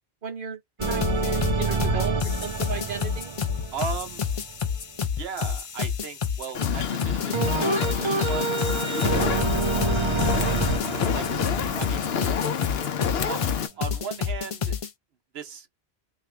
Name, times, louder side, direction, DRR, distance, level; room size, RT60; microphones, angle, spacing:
voice 1, 0.2-0.6 0.9-3.3, right 6 dB, 55° right, 1.2 m, -35 dB
sound 1, 0.8-14.9, left 7 dB, 45° left, 0.5 m, -29 dB
sound 2, 0.8-4.9 7.3-13.0, right 4 dB, 35° right, 0.5 m, -28 dB
voice 2, 3.7-4.3 5.1-7.3 7.7-9.6 9.9-10.5 11.0-11.3 11.8-12.1 13.3-14.8 15.3-15.7, right 6 dB, 75° right, 1.0 m, -37 dB
Fire, 6.5-13.7, left 7 dB, 75° left, 0.9 m, -29 dB
3.0 x 2.6 x 3.2 m
omnidirectional pair, 1.0 m